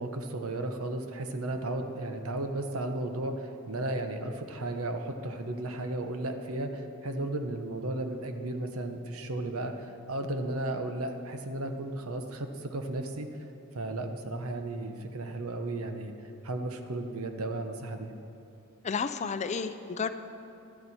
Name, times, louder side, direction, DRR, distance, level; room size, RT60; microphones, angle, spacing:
voice 1, 0.0-13.3 13.7-16.1 16.4-18.1, right 2 dB, 90° right, 6 dB, 0.9 m, -34 dB
voice 2, 18.8-20.1, left 5 dB, 30° left, 11 dB, 0.4 m, -31 dB
12.5 x 12.0 x 4.2 m, 2.7 s
head